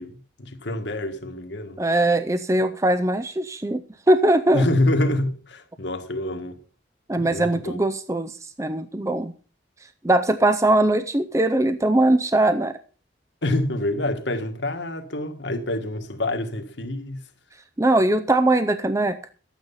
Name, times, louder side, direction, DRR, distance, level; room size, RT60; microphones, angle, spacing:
voice 1, 0.0-1.8 4.5-6.6 7.2-7.8 13.4-17.2, left 1 dB, 70° left, 1.7 m, -26 dB
voice 2, 1.8-4.7 7.1-9.3 10.0-12.8 17.8-19.2, right 1 dB, 15° right, 0.5 m, -21 dB
12.5 x 9.0 x 5.5 m
head